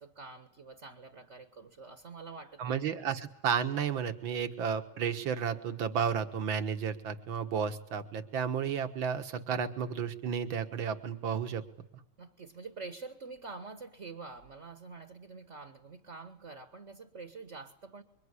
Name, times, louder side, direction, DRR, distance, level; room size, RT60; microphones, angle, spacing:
voice 1, 0.0-3.0 12.2-18.0, right 4 dB, 35° right, 9 dB, 1.6 m, -47 dB
voice 2, 2.6-11.6, right 7 dB, 65° right, 9 dB, 2.1 m, -32 dB
26.0 x 23.5 x 9.8 m, 0.72 s
omnidirectional pair, 2.3 m